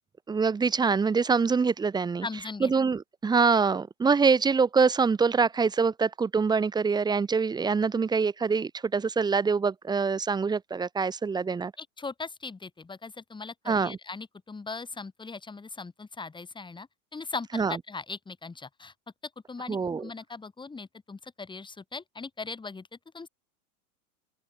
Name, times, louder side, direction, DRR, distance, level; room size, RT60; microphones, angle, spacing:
voice 1, 0.3-2.3 2.6-11.7 13.7-14.0 17.5-17.8 19.7-20.1, right 5 dB, 10° right, 0.9 m, -25 dB
voice 2, 2.2-2.7 11.8-18.9 19.5-22.9 23.1-23.3, left 4 dB, 10° left, 4.9 m, -39 dB
open air
hypercardioid pair, 120°, 43 cm